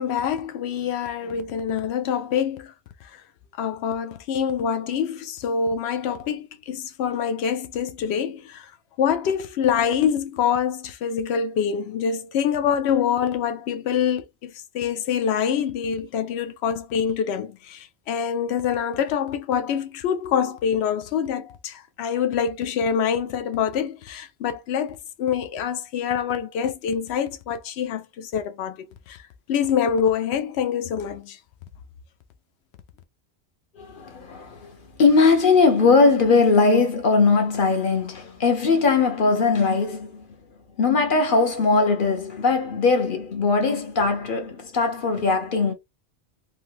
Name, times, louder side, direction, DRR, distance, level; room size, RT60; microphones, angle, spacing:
voice 1, 0.0-2.7 3.1-3.2 3.6-8.7 9.0-28.8 29.1-29.2 29.5-31.4, left 7 dB, 75° left, 0.8 m, -25 dB
voice 2, 33.7-40.3 40.8-45.7, left 4 dB, 55° left, 1.0 m, -20 dB
3.3 x 2.3 x 2.6 m
omnidirectional pair, 1.1 m